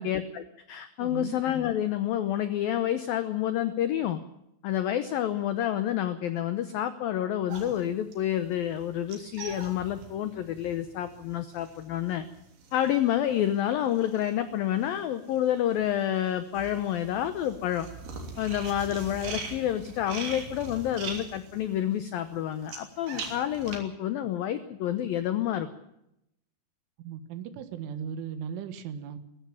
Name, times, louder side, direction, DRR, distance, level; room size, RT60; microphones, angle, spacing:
voice 1, 0.0-4.2 4.6-12.3 12.7-17.9 18.4-25.7, left 11 dB, 80° left, 11 dB, 2.1 m, -29 dB
voice 2, 1.0-1.4 27.0-29.2, right 7 dB, 85° right, 10 dB, 4.1 m, -37 dB
sound 1, 7.5-15.0 15.3-23.8, right 4 dB, 50° right, 4.4 m, -42 dB
21.5 x 14.5 x 9.0 m, 0.81 s
omnidirectional pair, 5.5 m